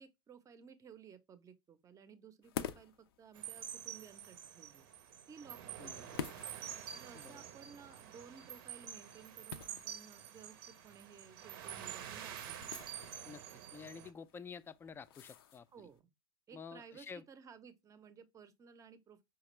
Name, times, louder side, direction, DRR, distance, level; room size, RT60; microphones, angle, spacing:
voice 1, 0.0-4.9 5.3-6.3 6.7-12.6 15.7-16.0 16.5-19.2, right 6 dB, 25° right, 0.6 m, -57 dB
sound 1, 2.4-16.0, left 9 dB, 80° left, 0.4 m, -51 dB
sound 2, 3.3-14.1, right 9 dB, 70° right, 0.6 m, -48 dB
voice 2, 5.8-6.1 7.1-7.4 13.2-13.4 13.7-15.7 16.5-17.2, left 6 dB, 20° left, 0.3 m, -50 dB
5.0 x 2.3 x 3.0 m
hypercardioid pair, 100°, 12 cm